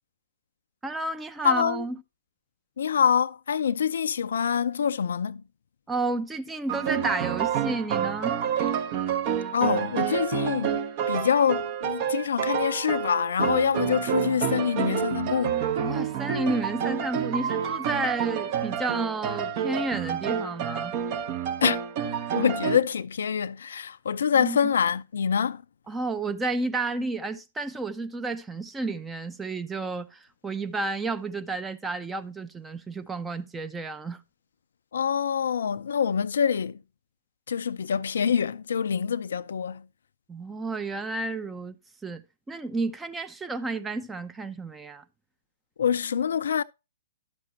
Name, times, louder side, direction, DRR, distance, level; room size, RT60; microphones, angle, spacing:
voice 1, 0.8-2.0 5.9-8.4 15.8-20.9 24.3-24.7 25.9-34.2 40.3-41.8 42.0-45.0, right 3 dB, 10° right, 0.6 m, -31 dB
voice 2, 1.4-1.8 2.8-5.4 9.5-10.8 11.1-15.6 21.6-21.8 22.3-25.6 34.9-36.8 37.5-39.9 45.8-46.6, left 7 dB, 70° left, 0.4 m, -25 dB
sound 1, 6.7-22.8, right 8 dB, 40° right, 1.0 m, -28 dB
12.0 x 6.1 x 2.8 m
figure-of-eight pair, 120°, 0 cm